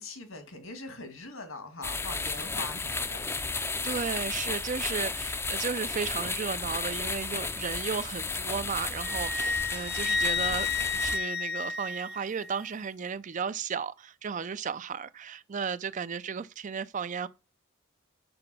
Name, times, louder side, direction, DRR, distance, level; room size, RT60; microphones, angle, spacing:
voice 1, 0.0-3.3, left 3 dB, 85° left, 2.0 m, -42 dB
sound 1, 1.8-11.2, left 3 dB, 10° left, 0.5 m, -33 dB
voice 2, 3.8-17.3, right 6 dB, 40° right, 0.4 m, -34 dB
Wind instrument woodwind instrument, 9.0-12.5, left 4 dB, 55° left, 0.8 m, -31 dB
7.8 x 4.9 x 6.0 m
head